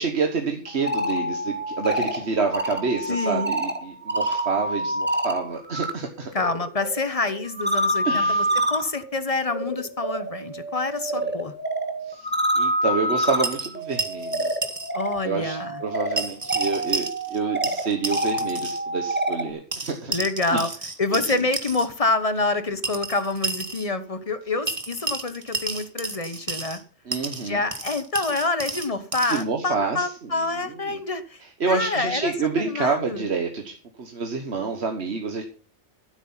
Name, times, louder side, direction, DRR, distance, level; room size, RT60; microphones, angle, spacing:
voice 1, 0.0-6.3 8.0-8.5 12.0-14.5 15.2-20.1 20.5-20.7 21.3-21.4 27.0-27.6 29.2-31.0 31.4-35.4, right 4 dB, 70° right, 4 dB, 1.7 m, -28 dB
sound 1, 0.7-5.9 6.2-19.5, right 1 dB, 10° right, 1.7 m, -27 dB
voice 2, 3.1-3.5 6.3-8.4 8.7-11.5 14.9-15.8 20.1-20.7 21.0-26.8 27.5-31.4 31.7-33.2, left 3 dB, 35° left, 12 dB, 1.1 m, -27 dB
sound 2, 13.4-14.9 15.2-15.3 16.2-17.4 17.6-18.8 19.7-21.9 22.8-23.9 24.7-26.8 27.1-29.4, right 3 dB, 30° right, 1.5 m, -31 dB
14.0 x 8.3 x 5.7 m, 0.39 s
omnidirectional pair, 1.2 m